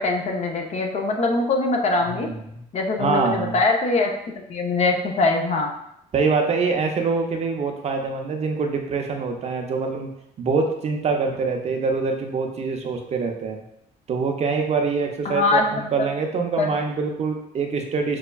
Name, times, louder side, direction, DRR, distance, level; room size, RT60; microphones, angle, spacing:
voice 1, 0.0-2.3 2.7-4.1 4.5-5.7 15.2-16.1 16.6-16.8, left 3 dB, 40° left, 2 dB, 0.6 m, -22 dB
voice 2, 2.2-2.6 3.0-3.6 6.1-10.1 10.4-13.6 14.1-18.2, right 4 dB, 40° right, 3 dB, 0.5 m, -24 dB
5.3 x 2.2 x 2.2 m, 0.76 s
cardioid pair, 110°, 17 cm